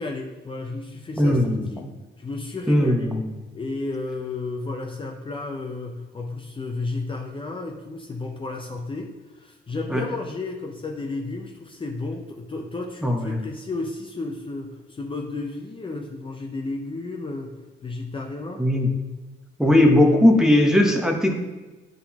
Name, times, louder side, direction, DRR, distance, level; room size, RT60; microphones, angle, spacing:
voice 1, 0.0-1.4 1.7-1.9 2.2-3.1 3.5-17.5 17.8-18.6, left 3 dB, 25° left, 0 dB, 0.7 m, -32 dB
voice 2, 1.2-1.7 2.7-3.2 9.9-10.0 13.0-13.4 18.6-18.9 19.6-21.3, left 1 dB, 5° right, 2 dB, 1.0 m, -18 dB
9.2 x 3.9 x 3.0 m, 1.2 s
cardioid pair, 90°, 20 cm